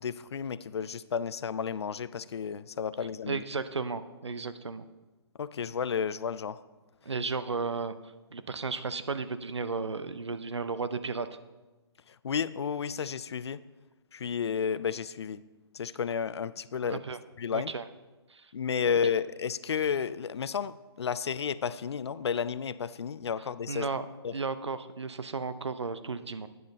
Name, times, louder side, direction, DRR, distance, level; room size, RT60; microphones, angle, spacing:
voice 1, 0.0-3.4 5.4-6.6 12.2-13.6 14.1-15.4 15.7-17.0 17.4-17.7 18.5-23.9 24.2-24.3, left 7 dB, 75° left, 16 dB, 0.4 m, -32 dB
voice 2, 3.3-4.8 7.0-7.9 8.3-11.3 16.8-17.2 17.5-17.8 18.3-18.5 23.7-24.1 24.3-26.5, right 4 dB, 90° right, 12 dB, 0.6 m, -34 dB
9.3 x 7.5 x 3.9 m, 1.2 s
figure-of-eight pair, 140°, 14 cm